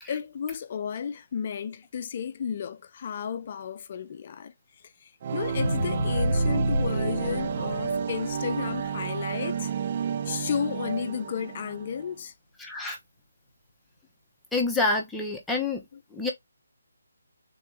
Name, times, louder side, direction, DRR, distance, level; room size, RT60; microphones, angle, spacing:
voice 1, 0.1-4.5 5.0-9.7 10.3-12.3, left 7 dB, 40° left, 0.6 m, -33 dB
sound 1, 5.2-12.1, right 7 dB, 40° right, 0.4 m, -31 dB
sound 2, 5.4-9.7 10.2-10.3, left 1 dB, 90° left, 0.7 m, -30 dB
voice 2, 12.6-13.0 14.5-15.8 16.1-16.3, left 3 dB, 5° left, 1.0 m, -27 dB
3.8 x 3.4 x 3.3 m
figure-of-eight pair, 150°, 0 cm